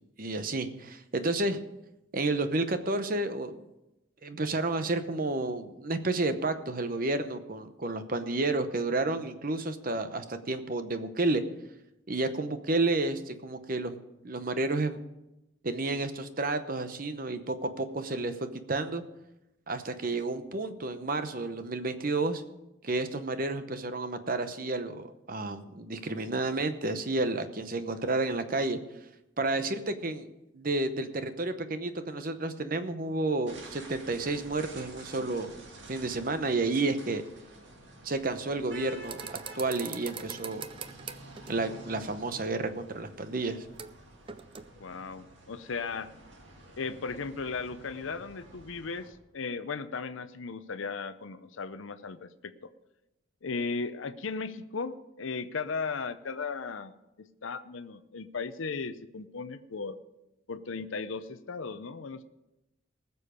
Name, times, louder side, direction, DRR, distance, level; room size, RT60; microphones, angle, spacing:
voice 1, 0.2-1.6 2.1-3.6 4.2-11.4 12.1-14.0 14.2-15.0 15.6-19.0 19.7-22.4 22.8-28.8 29.4-30.3 30.5-35.6 35.9-37.2 38.0-40.6 41.5-43.6, right 2 dB, 45° right, 10 dB, 0.8 m, -31 dB
sound 1, 33.5-49.1, right 1 dB, 65° right, 2.0 m, -50 dB
sound 2, 39.0-41.8 43.8-44.0 44.3-44.6, right 6 dB, 25° right, 0.4 m, -42 dB
voice 2, 44.8-46.1 46.8-52.5 53.4-60.0 60.5-62.2, left 4 dB, 75° left, 11 dB, 0.7 m, -36 dB
19.0 x 7.0 x 5.1 m, 0.94 s
head